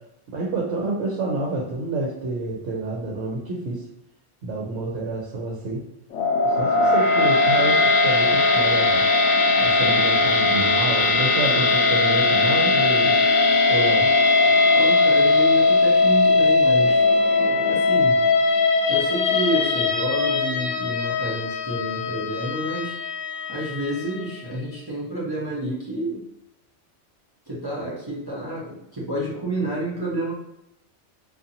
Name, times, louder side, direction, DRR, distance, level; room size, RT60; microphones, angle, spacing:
voice 1, 0.3-3.8 4.4-5.8 6.4-9.0 9.6-13.1 13.7-14.1, right 2 dB, 75° right, -3 dB, 0.9 m, -28 dB
sound 1, 6.1-24.4, left 3 dB, 75° left, 0.9 m, -19 dB
voice 2, 14.6-17.1 17.6-18.3 18.9-23.0 23.5-26.2 27.5-30.3, right 1 dB, 35° right, -6 dB, 0.3 m, -29 dB
2.6 x 2.4 x 2.6 m, 0.82 s
omnidirectional pair, 1.2 m